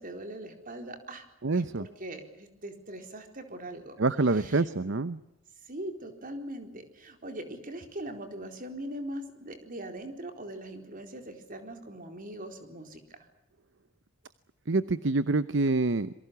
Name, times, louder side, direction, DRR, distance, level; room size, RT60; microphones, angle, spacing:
voice 1, 0.0-1.3 1.5-4.0 4.3-4.6 5.6-13.3, right 1 dB, 45° right, 6 dB, 4.2 m, -41 dB
voice 2, 1.4-1.9 4.0-5.2 14.7-16.1, right 3 dB, 65° right, 14 dB, 0.8 m, -26 dB
27.5 x 23.0 x 7.0 m, 0.89 s
head